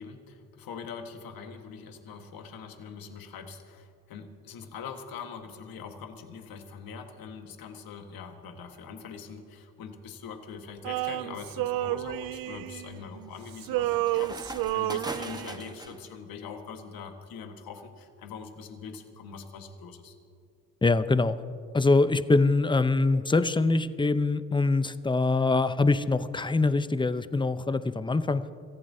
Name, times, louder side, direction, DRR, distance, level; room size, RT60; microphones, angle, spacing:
voice 1, 0.0-20.1, left 6 dB, 65° left, 5 dB, 1.6 m, -43 dB
Quake with crash, 10.5-10.9 11.5-16.1, right 2 dB, 10° right, 1.2 m, -42 dB
Male singing, 10.8-13.3 13.6-15.7, right 15 dB, 65° right, 0.5 m, -31 dB
voice 2, 20.8-21.4 21.7-28.4, left 3 dB, 15° left, 13 dB, 0.7 m, -24 dB
27.0 x 15.0 x 2.8 m, 2.3 s
supercardioid pair, 55°, 37 cm